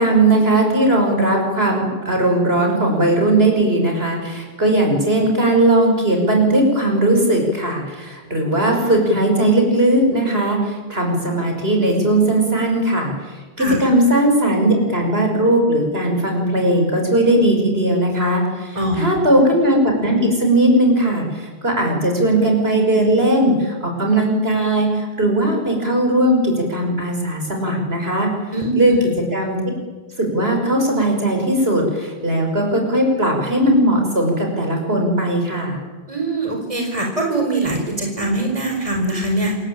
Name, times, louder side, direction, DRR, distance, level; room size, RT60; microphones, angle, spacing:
voice 1, 0.0-13.1 13.6-28.3 28.7-28.9 29.3-29.6 30.2-35.8, right 1 dB, 70° right, 2 dB, 6.4 m, -18 dB
voice 2, 13.6-13.9 18.7-19.2 28.5-29.0 36.1-39.6, right 2 dB, 30° right, 1 dB, 4.8 m, -22 dB
27.5 x 22.0 x 9.0 m, 1.3 s
omnidirectional pair, 1.1 m